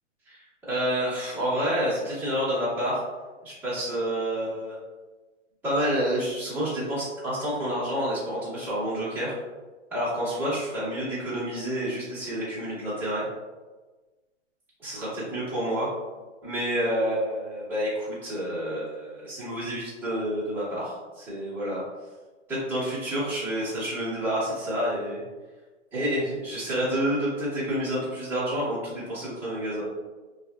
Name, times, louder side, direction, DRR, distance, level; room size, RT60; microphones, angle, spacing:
voice 1, 0.3-3.0 3.4-4.8 5.6-9.3 9.9-13.2 14.8-15.9 16.4-21.8 22.5-25.2 25.9-29.8, equal, 5° right, -12 dB, 1.2 m, -29 dB
3.2 x 2.5 x 2.3 m, 1.2 s
hypercardioid pair, 145°, 37 cm